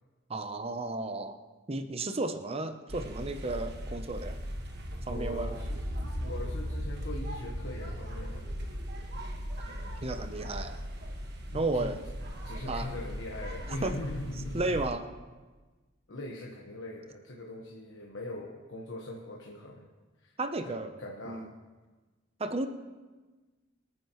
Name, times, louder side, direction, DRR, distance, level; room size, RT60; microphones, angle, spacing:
voice 1, 0.3-1.4 1.7-4.4 5.1-5.6 10.0-10.8 11.5-12.0 12.7-12.9 13.8-14.0 14.5-15.0 20.4-21.0 21.3-21.5 22.4-22.7, right 2 dB, 30° right, 8 dB, 0.7 m, -33 dB
sound 1, 2.9-14.9, equal, 55° right, 1.4 m, -38 dB
voice 2, 5.1-5.8 6.2-8.5 11.5-11.9 12.4-14.7 16.1-19.9 20.2-20.3 20.6-21.5, left 1 dB, 70° left, -1 dB, 1.3 m, -41 dB
25.5 x 9.4 x 3.0 m, 1.3 s
head